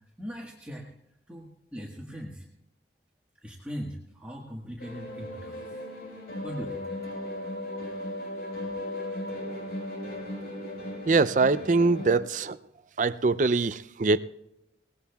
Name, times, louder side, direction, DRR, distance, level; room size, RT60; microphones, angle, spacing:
voice 1, 0.2-0.8 1.3-2.4 3.4-5.8 6.4-6.8, equal, 5° right, -3 dB, 1.4 m, -39 dB
sound 1, 4.8-12.2, left 1 dB, 65° left, 4.6 m, -36 dB
voice 2, 11.1-12.6 13.0-14.2, right 3 dB, 45° right, 16 dB, 0.4 m, -23 dB
21.5 x 18.5 x 2.3 m, 0.87 s
head